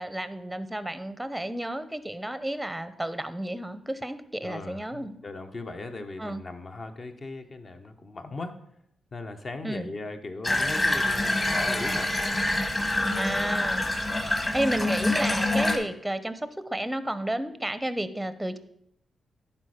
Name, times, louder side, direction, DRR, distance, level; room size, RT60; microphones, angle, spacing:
voice 1, 0.0-5.2 6.2-6.4 9.6-9.9 13.2-13.8 14.2-16.4 16.7-18.6, right 1 dB, 10° right, 12 dB, 0.6 m, -32 dB
voice 2, 4.4-8.5 9.1-12.1, left 3 dB, 45° left, 6 dB, 1.0 m, -38 dB
Water tap faucet / Bathtub (filling or washing), 10.4-15.8, left 1 dB, 25° left, 1.5 m, -26 dB
11.0 x 4.3 x 4.9 m, 0.73 s
cardioid pair, 70°, 0 cm